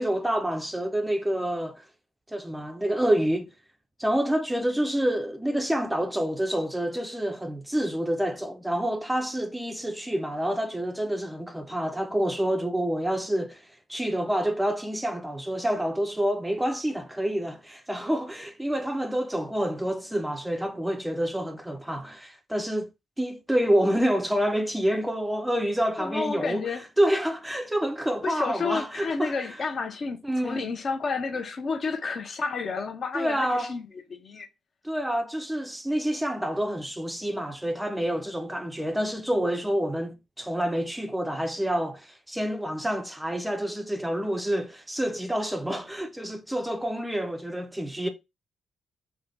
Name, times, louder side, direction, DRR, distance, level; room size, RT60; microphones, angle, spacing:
voice 1, 0.0-1.8 2.3-3.5 4.0-13.6 13.9-22.9 23.2-26.7 27.0-29.3 30.2-30.7 33.1-33.7 34.8-48.1, equal, 5° right, 0.4 m, -28 dB
voice 2, 26.0-26.8 28.2-34.5, left 4 dB, 45° left, 0.5 m, -31 dB
2.7 x 2.2 x 3.1 m
cardioid pair, 90°, 0 cm